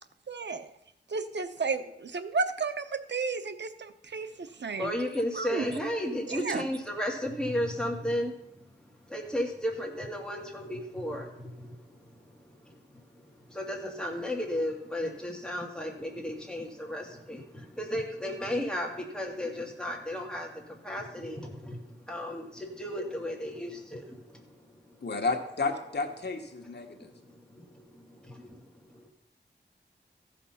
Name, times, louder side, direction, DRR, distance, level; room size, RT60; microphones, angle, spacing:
voice 1, 0.3-0.7 1.1-4.9 5.3-5.6 6.3-6.6, right 4 dB, 75° right, 9 dB, 0.8 m, -33 dB
voice 2, 4.8-25.0 26.8-29.1, left 1 dB, 5° left, -1 dB, 2.3 m, -35 dB
voice 3, 25.0-27.1, left 3 dB, 70° left, 3 dB, 1.4 m, -32 dB
14.5 x 5.9 x 5.7 m, 0.81 s
wide cardioid pair, 85°, 18 cm